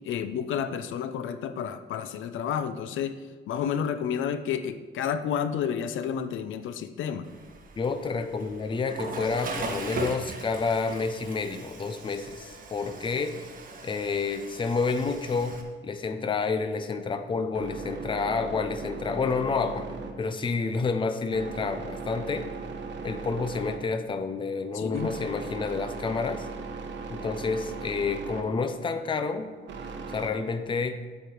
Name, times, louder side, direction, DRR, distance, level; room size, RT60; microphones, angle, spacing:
voice 1, 0.0-3.2 3.5-7.3 24.7-25.1, left 8 dB, 80° left, 11 dB, 0.7 m, -30 dB
Water / Toilet flush, 7.2-15.6, right 3 dB, 45° right, 1.5 m, -39 dB
voice 2, 7.8-13.4 13.8-15.6 15.8-19.9 20.2-22.5 23.0-26.5 27.1-29.5 30.1-31.0, left 4 dB, 25° left, 9 dB, 0.6 m, -29 dB
sound 1, 16.7-30.3, right 4 dB, 65° right, 1.3 m, -39 dB
10.5 x 8.3 x 4.6 m, 1.5 s
cardioid pair, 145°, 20 cm